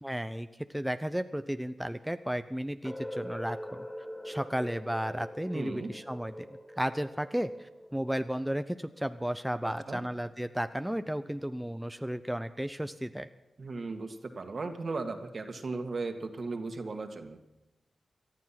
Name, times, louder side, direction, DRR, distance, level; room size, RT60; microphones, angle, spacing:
voice 1, 0.0-3.9 4.2-6.5 6.8-13.3, equal, 5° right, 9 dB, 0.7 m, -34 dB
sound 1, 2.8-8.7, equal, 10° left, 1.9 m, -43 dB
voice 2, 5.5-5.9 9.6-10.0 13.6-17.4, right 3 dB, 55° right, 6 dB, 1.9 m, -37 dB
18.5 x 12.0 x 5.9 m, 0.96 s
cardioid pair, 50°, 0 cm